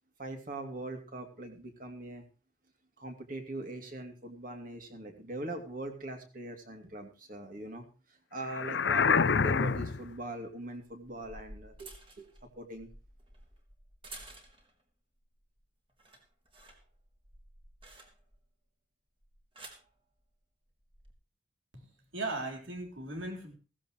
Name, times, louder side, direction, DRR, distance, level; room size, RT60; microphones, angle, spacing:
voice 1, 0.2-2.2 3.0-12.3 12.6-12.9, right 2 dB, 45° right, 5 dB, 2.6 m, -41 dB
sound 1, 8.5-10.1, left 5 dB, 65° left, 0.6 m, -27 dB
sound 2, 10.9-14.8 15.2-15.6 15.9-18.5 19.2-19.9 20.8-21.1, right 2 dB, 25° right, 2.9 m, -52 dB
voice 2, 22.1-23.6, right 2 dB, 85° right, 2 dB, 3.8 m, -37 dB
15.5 x 15.0 x 3.1 m, 0.35 s
head